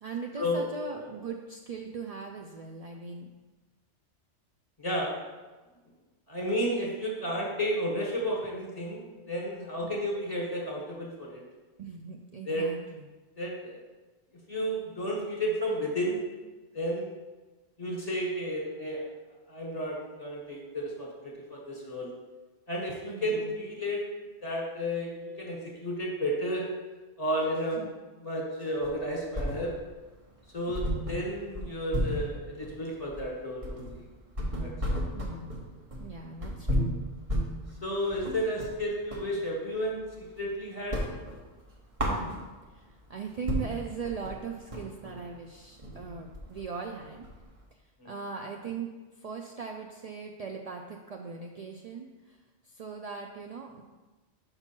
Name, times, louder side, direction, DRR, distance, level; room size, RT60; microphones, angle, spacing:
voice 1, 0.0-3.3 9.8-9.9 11.8-13.1 23.1-23.5 27.8-28.0 30.7-30.8 35.1-35.6 36.0-37.0 42.0-42.4 42.7-47.3 47.7-53.8, right 5 dB, 75° right, 2 dB, 0.3 m, -40 dB
voice 2, 4.8-5.2 6.3-11.4 12.5-12.7 13.4-13.8 14.5-16.2 16.7-17.1 17.8-19.0 19.5-22.1 22.7-24.1 24.4-26.7 27.2-27.9 28.2-29.7 30.5-34.0 34.6-35.0 37.8-41.0 48.0-48.1, equal, 35° left, -2 dB, 1.4 m, -32 dB
sound 1, 28.8-30.0 30.3-30.4 30.7-39.3 39.7-40.5 40.8-42.8 43.2-43.3 43.5-47.6, equal, 30° right, 1.0 m, -33 dB
5.9 x 5.1 x 4.4 m, 1.2 s
omnidirectional pair, 1.2 m